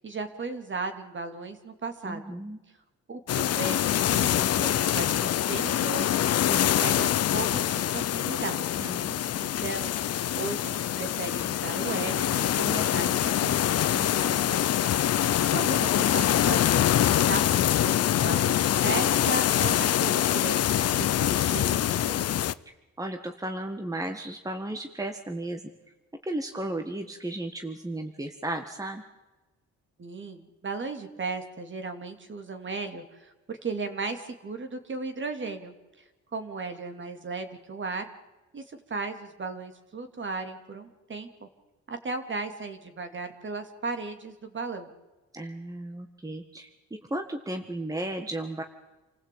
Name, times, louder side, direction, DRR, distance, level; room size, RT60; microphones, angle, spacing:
voice 1, 0.0-2.4 3.1-6.2 6.5-8.6 8.9-9.1 9.4-10.0 10.4-13.7 15.5-22.3 30.0-35.7 36.3-38.1 38.5-41.5 41.9-44.9, right 3 dB, 40° right, 7 dB, 3.0 m, -36 dB
voice 2, 2.0-2.6 8.8-9.5 13.9-14.5 22.6-25.6 26.2-29.0 45.3-48.6, right 1 dB, 10° right, 6 dB, 1.7 m, -35 dB
sound 1, 3.3-22.5, left 11 dB, 55° left, 0.7 m, -25 dB
28.0 x 15.5 x 8.7 m, 1.1 s
cardioid pair, 90°, 30 cm